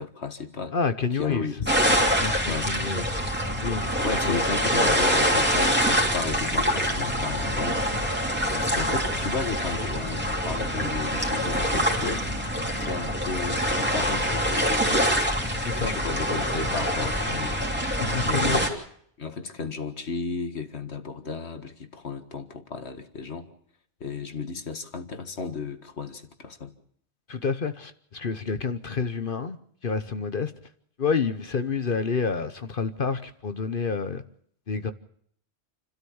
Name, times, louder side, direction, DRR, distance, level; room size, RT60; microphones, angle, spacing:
voice 1, 0.0-0.7 1.2-1.6 2.5-2.7 4.0-7.8 8.5-12.3 12.8-15.1 15.8-17.6 18.2-18.7 19.2-23.5 24.0-26.7, left 4 dB, 70° left, 2.0 m, -34 dB
voice 2, 0.7-1.5 2.2-3.1 3.6-3.8 4.2-4.4 15.6-15.9 18.0-18.6 27.3-29.6 29.8-30.5 31.0-34.2 34.7-34.9, left 5 dB, 50° left, 1.1 m, -28 dB
sound 1, 1.7-18.7, equal, 10° right, 3.1 m, -25 dB
29.0 x 13.0 x 7.1 m
omnidirectional pair, 1.1 m